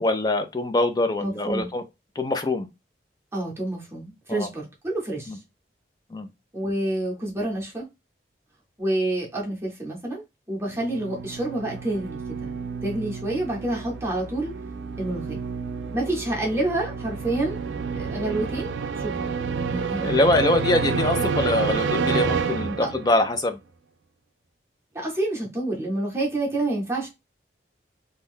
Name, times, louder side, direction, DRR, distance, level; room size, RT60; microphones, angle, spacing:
voice 1, 0.0-1.8 2.2-2.7 4.3-4.5 5.3-5.4 6.1-6.3 20.0-23.6, left 2 dB, 20° left, 0.4 m, -23 dB
voice 2, 1.2-1.7 3.3-5.4 6.5-7.8 8.8-14.5 15.0-15.4 15.9-17.6 17.9-19.4 19.7-20.0 22.8-22.9 24.9-27.1, right 2 dB, 15° right, 0.8 m, -28 dB
sound 1, 10.7-23.3, right 5 dB, 85° right, 0.4 m, -29 dB
2.6 x 2.3 x 3.5 m
head